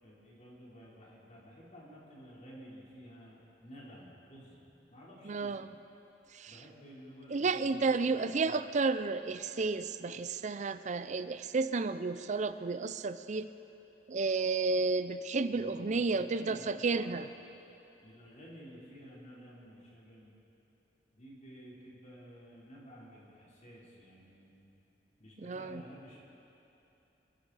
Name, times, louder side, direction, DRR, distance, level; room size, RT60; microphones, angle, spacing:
voice 1, 0.0-5.6 6.5-8.6 15.5-17.2 17.9-20.3 21.1-24.7 25.2-26.2, equal, 45° left, -6 dB, 3.6 m, -52 dB
voice 2, 5.2-5.8 6.3-6.6 7.3-13.5 14.1-17.3 25.4-25.8, right 4 dB, 45° right, 11 dB, 0.5 m, -32 dB
28.5 x 11.0 x 4.1 m, 3.0 s
head